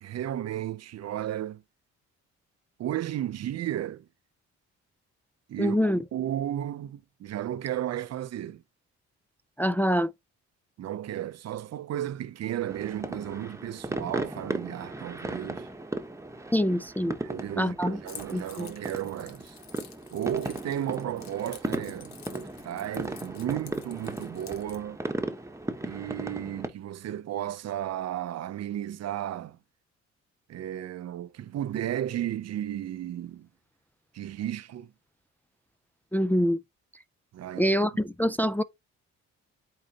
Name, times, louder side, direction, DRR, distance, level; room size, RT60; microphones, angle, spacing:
voice 1, 0.0-1.6 2.8-4.1 5.5-5.8 6.1-8.6 10.8-15.7 17.0-19.6 20.1-25.0 25.8-29.6 30.5-33.5 34.1-34.9 37.3-37.8 38.2-38.3, right 11 dB, 55° right, 0.6 m, -34 dB
voice 2, 5.6-6.0 9.6-10.1 16.5-17.1 17.6-18.0 18.3-18.7 36.1-36.6 37.6-38.6, equal, 5° left, 0.4 m, -25 dB
sound 1, 12.7-26.7, right 2 dB, 10° right, 1.1 m, -37 dB
Keys jangling, 18.1-24.8, left 7 dB, 65° left, 1.4 m, -49 dB
8.3 x 4.0 x 2.9 m
cardioid pair, 90°, 30 cm